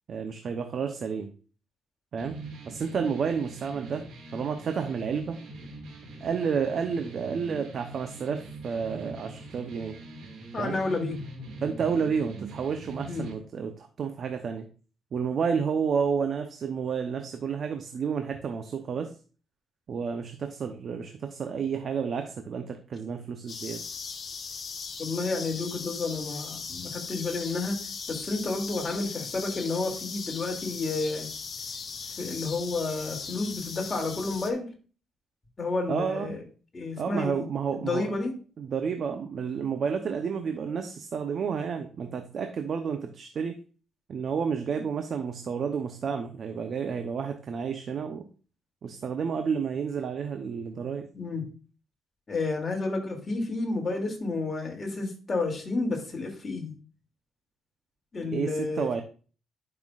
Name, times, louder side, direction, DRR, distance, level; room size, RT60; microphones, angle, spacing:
voice 1, 0.1-1.3 2.1-2.3 2.7-4.0 4.3-5.4 6.2-9.9 10.6-10.8 11.6-14.7 15.1-19.1 19.9-23.8 35.9-36.3 37.0-38.1 38.6-43.6 44.1-48.2 48.8-51.1 58.3-59.0, right 6 dB, 55° right, 6 dB, 0.8 m, -30 dB
sound 1, 2.2-13.3, right 2 dB, 75° right, 2.2 m, -43 dB
voice 2, 10.5-11.2 13.1-13.2 25.0-27.8 28.1-31.3 32.2-34.7 35.6-36.4 36.7-37.4 37.7-38.3 51.1-51.4 52.3-56.7 58.1-58.9, left 3 dB, 35° left, 1 dB, 2.7 m, -31 dB
sound 2, 23.5-34.5, left 5 dB, 50° left, 1.0 m, -38 dB
10.5 x 5.9 x 2.5 m, 0.38 s
cardioid pair, 90°, 0 cm